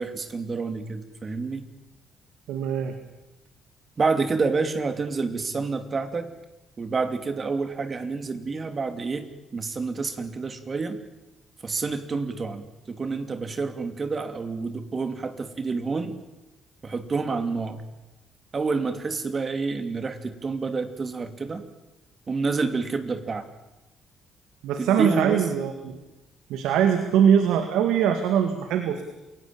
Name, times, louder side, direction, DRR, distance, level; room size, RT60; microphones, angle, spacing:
voice 1, 0.0-1.6 4.0-6.3 6.8-11.0 11.6-16.2 16.8-17.8 18.5-21.6 22.3-23.5 24.8-25.4, right 4 dB, 35° right, 10 dB, 2.8 m, -28 dB
voice 2, 2.5-2.9 24.6-26.0 26.5-29.0, right 8 dB, 90° right, 8 dB, 2.1 m, -22 dB
28.0 x 17.0 x 8.9 m, 1.0 s
cardioid pair, 85°, 0 cm